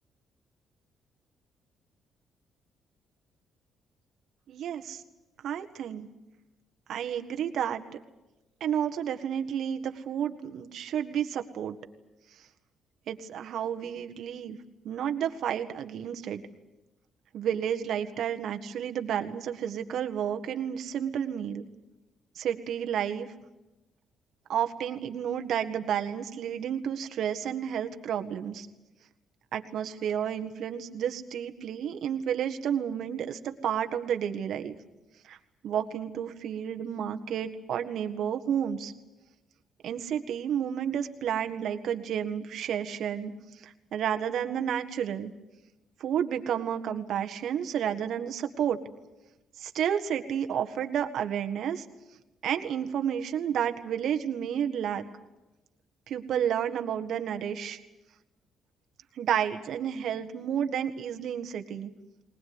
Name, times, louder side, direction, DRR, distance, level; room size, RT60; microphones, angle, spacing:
voice 1, 4.5-5.0 5.4-6.1 6.9-7.8 8.6-11.8 13.1-14.6 14.8-16.4 17.3-21.6 22.4-23.3 24.5-28.7 29.5-34.7 35.2-35.4 35.6-38.9 39.8-43.4 43.6-45.3 46.0-48.8 49.6-51.9 52.4-55.0 56.1-57.8 59.2-61.9, right 9 dB, 70° right, 6 dB, 1.7 m, -31 dB
20.5 x 20.0 x 9.7 m, 1.0 s
cardioid pair, 100°, 0 cm